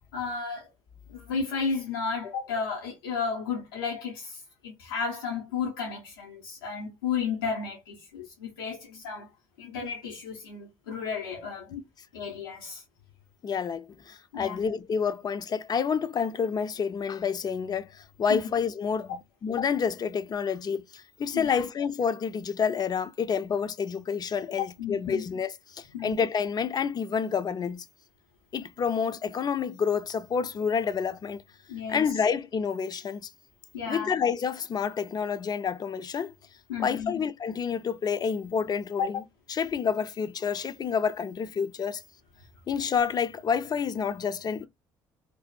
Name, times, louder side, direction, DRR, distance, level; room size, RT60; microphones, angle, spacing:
voice 1, 0.1-0.7 1.1-9.3 9.6-11.8 12.1-12.8 14.3-14.6 18.3-18.4 21.3-21.6 24.8-25.2 25.9-26.1 31.7-32.0 33.7-34.1 36.7-37.1 39.0-39.1, left 5 dB, 85° left, 0.6 m, -33 dB
voice 2, 13.4-27.9 28.5-31.4 31.9-33.3 33.9-36.3 36.8-39.1 39.5-42.0 42.7-44.7, left 6 dB, 35° left, 0.4 m, -29 dB
2.6 x 2.1 x 2.3 m
hypercardioid pair, 55°, 11 cm